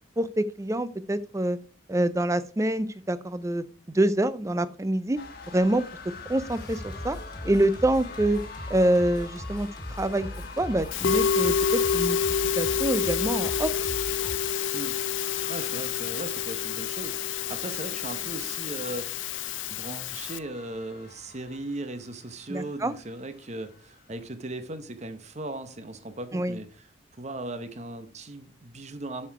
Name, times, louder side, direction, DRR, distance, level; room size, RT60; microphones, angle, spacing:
voice 1, 0.2-1.6 1.9-3.6 3.9-5.2 5.5-5.8 6.3-7.2 7.4-8.4 8.7-9.7 10.0-10.3 10.6-12.2 12.6-13.7 22.5-22.9 26.3-26.6, right 1 dB, 15° right, 0.4 m, -26 dB
sound 1, 5.2-24.2, left 4 dB, 50° left, 1.3 m, -46 dB
Singing, 6.1-14.4, left 1 dB, 20° left, 1.9 m, -39 dB
Musical instrument, 10.9-20.4, left 7 dB, 70° left, 0.5 m, -28 dB
voice 2, 15.5-19.1 19.4-26.8 27.2-29.3, right 2 dB, 35° right, 0.8 m, -38 dB
7.3 x 6.6 x 4.6 m
head